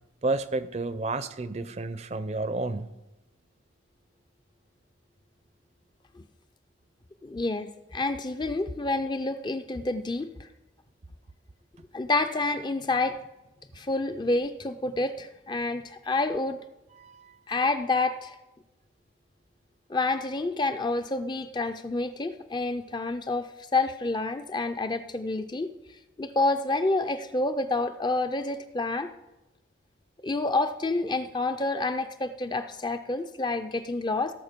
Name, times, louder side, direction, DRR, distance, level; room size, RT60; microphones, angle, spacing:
voice 1, 0.2-2.9 17.0-17.3, right 3 dB, 35° right, 13 dB, 0.5 m, -31 dB
voice 2, 7.2-10.3 11.9-13.2 13.7-16.6 17.5-18.3 19.9-25.7 26.2-29.1 30.2-34.3, left 2 dB, 20° left, 9 dB, 0.4 m, -28 dB
17.0 x 6.5 x 5.2 m, 1.0 s
head